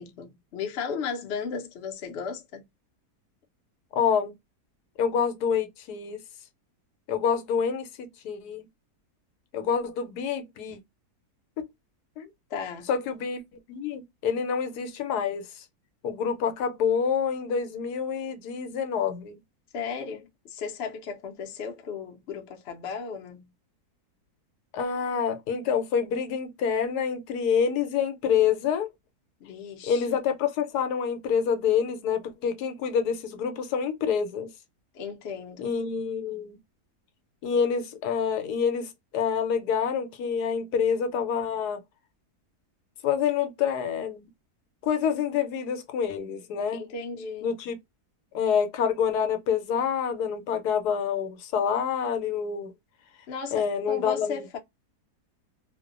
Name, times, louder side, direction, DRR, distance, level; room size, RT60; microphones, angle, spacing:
voice 1, 0.0-2.6 12.5-12.9 19.7-23.5 29.4-30.1 34.9-35.7 46.7-47.5 53.3-54.6, left 6 dB, 60° left, 0.7 m, -35 dB
voice 2, 3.9-4.3 5.0-6.2 7.1-7.9 8.2-8.7 9.5-10.8 12.2-12.3 12.9-13.4 13.7-15.6 16.0-19.4 24.7-28.9 29.9-34.5 35.6-36.6 37.4-41.8 43.0-44.3 44.8-46.8 47.4-47.8 48.3-52.7 53.5-54.4, left 7 dB, 80° left, 1.1 m, -27 dB
2.5 x 2.1 x 2.4 m
omnidirectional pair, 1.7 m